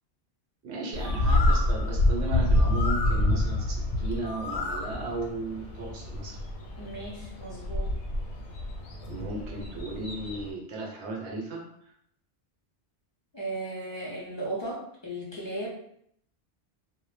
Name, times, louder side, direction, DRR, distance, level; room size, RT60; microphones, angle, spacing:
voice 1, 0.6-6.4 9.1-11.9, right 2 dB, 75° right, -1 dB, 0.9 m, -36 dB
Bird, 0.9-10.5, left 1 dB, 90° left, 0.9 m, -27 dB
voice 2, 6.8-7.9 13.3-15.7, right 1 dB, 40° left, -5 dB, 0.4 m, -36 dB
2.1 x 2.0 x 3.0 m, 0.69 s
omnidirectional pair, 1.2 m